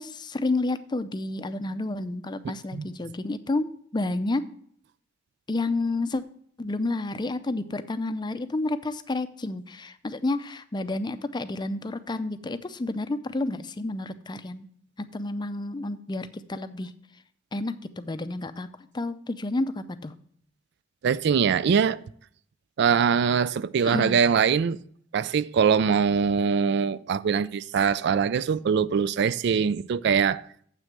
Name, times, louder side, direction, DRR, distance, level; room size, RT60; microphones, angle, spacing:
voice 1, 0.0-4.4 5.5-6.2 6.6-14.7 15.0-16.9 17.5-18.7 18.9-20.1 23.9-24.2, left 2 dB, 25° left, 0.5 m, -30 dB
voice 2, 21.0-22.0 22.8-24.8 25.1-30.4, right 6 dB, 60° right, 0.3 m, -23 dB
7.6 x 6.3 x 5.9 m
head